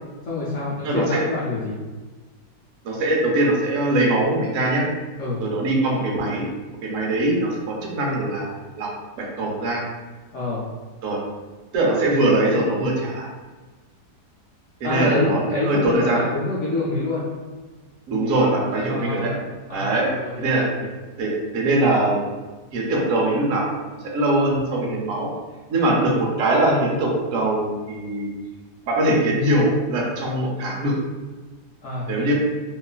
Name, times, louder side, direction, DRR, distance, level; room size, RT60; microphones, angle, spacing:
voice 1, 0.2-1.8 5.2-5.4 10.3-10.7 14.8-17.3 18.8-20.9 25.8-26.2 31.8-32.3, left 2 dB, 70° left, -8 dB, 0.7 m, -27 dB
voice 2, 0.8-1.2 2.8-4.8 5.4-6.4 6.8-8.9 9.2-9.8 11.0-11.2 11.7-13.3 14.8-15.4 15.7-16.2 18.1-19.3 19.7-20.1 20.4-20.6 21.2-22.2 22.7-25.3 25.7-28.3 28.9-30.9 32.1-32.3, right 1 dB, 65° right, -2 dB, 1.0 m, -22 dB
2.9 x 2.4 x 2.3 m, 1.3 s
omnidirectional pair, 1.7 m